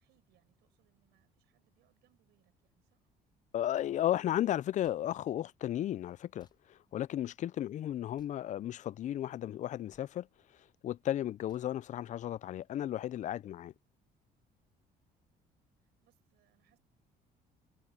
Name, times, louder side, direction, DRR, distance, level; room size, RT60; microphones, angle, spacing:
voice 1, 0.0-3.1 15.8-16.8, right 16 dB, 80° right, 5.9 m, -74 dB
voice 2, 3.5-10.3 10.5-13.7, left 12 dB, 45° left, 0.4 m, -34 dB
sound 1, 4.8-5.0 6.4-6.6 8.1-8.4 9.9-10.1 11.5-11.7, left 5 dB, 25° left, 1.2 m, -66 dB
cardioid pair, 110°, 17 cm